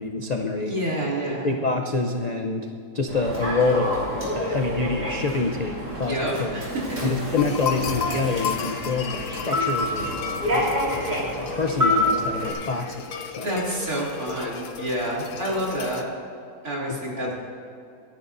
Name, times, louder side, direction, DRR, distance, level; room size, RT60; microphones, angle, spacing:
voice 1, 0.0-0.7 1.4-2.7 2.9-6.5 7.0-13.5 17.2-17.3, left 3 dB, 50° left, 3 dB, 0.5 m, -27 dB
voice 2, 0.6-1.5 6.1-7.0 13.3-16.0 16.6-17.3, right 1 dB, 65° right, -4 dB, 3.3 m, -28 dB
Human voice / Subway metro underground, 3.1-12.5, left 1 dB, 30° right, 4.1 m, -28 dB
sound 1, 7.4-16.0, left 7 dB, 85° left, 1.4 m, -34 dB
24.5 x 11.0 x 2.6 m, 2.5 s
omnidirectional pair, 1.7 m